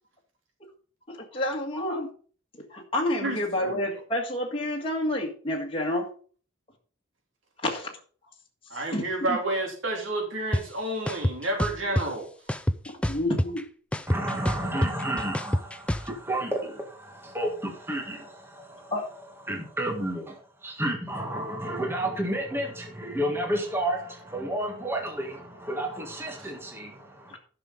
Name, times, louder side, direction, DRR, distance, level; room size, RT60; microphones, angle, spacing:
voice 1, 1.1-2.1 2.7-6.1 7.6-7.9 8.9-9.4 13.1-13.6 18.9-19.1, left 1 dB, 25° left, 1.9 m, -29 dB
voice 2, 3.2-3.8 8.7-12.3 26.4-26.5, right 2 dB, 70° right, 3.3 m, -30 dB
sound 1, 10.5-10.6 11.1-12.0 12.5-13.6 13.9-16.1, equal, 5° left, 0.5 m, -26 dB
voice 3, 14.1-18.9 19.5-27.4, right 1 dB, 10° right, 1.6 m, -31 dB
11.5 x 6.1 x 5.3 m
head